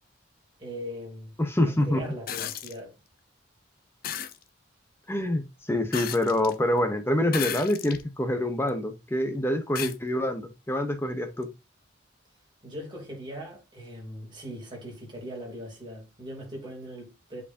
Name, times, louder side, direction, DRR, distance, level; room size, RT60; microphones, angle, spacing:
voice 1, 0.6-1.3 1.6-2.9 12.6-17.4, equal, 20° right, 3.0 m, -40 dB
voice 2, 1.4-2.0 5.1-5.4 5.7-11.5, left 1 dB, 10° left, 0.9 m, -26 dB
sound 1, 2.3-2.8 4.0-4.4 5.9-6.5 7.3-8.0 8.7-8.8 9.8-10.0 11.4-11.5, left 10 dB, 45° left, 0.5 m, -34 dB
7.8 x 4.6 x 2.7 m
head